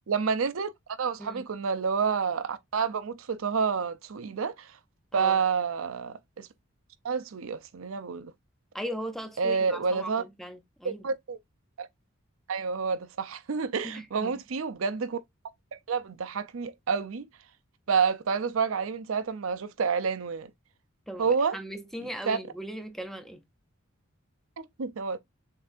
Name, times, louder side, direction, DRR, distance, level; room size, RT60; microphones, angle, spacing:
voice 1, 0.1-0.7 1.0-4.7 5.1-6.5 7.0-8.3 9.4-10.2 10.8-11.4 11.8-11.9 12.5-15.2 15.7-17.3 17.9-20.5 21.2-21.6 22.0-22.4 24.6-25.2, right 5 dB, 75° right, 0.5 m, -29 dB
voice 2, 5.1-5.4 8.7-11.0 13.8-14.4 21.1-23.4, right 1 dB, ahead, 0.5 m, -38 dB
6.8 x 2.7 x 2.4 m
head